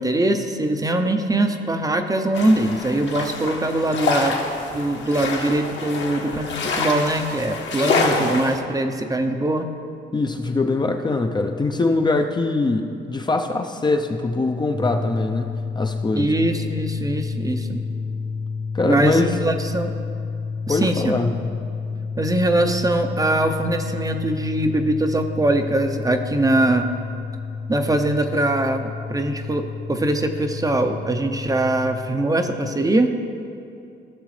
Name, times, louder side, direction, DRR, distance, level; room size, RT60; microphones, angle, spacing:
voice 1, 0.0-4.4 4.7-9.7 16.1-17.8 18.8-19.9 20.7-21.2 22.2-26.9 27.7-33.1, right 1 dB, 20° right, 6 dB, 0.6 m, -22 dB
sound 1, 2.3-8.6, left 3 dB, 65° left, 1.5 m, -26 dB
voice 2, 10.1-16.3 18.7-19.4 20.7-21.5, left 3 dB, 20° left, 4 dB, 0.5 m, -22 dB
sound 2, 14.7-32.1, left 4 dB, 85° right, 2.2 m, -30 dB
15.5 x 6.1 x 3.2 m, 2.5 s
cardioid pair, 90°, 20 cm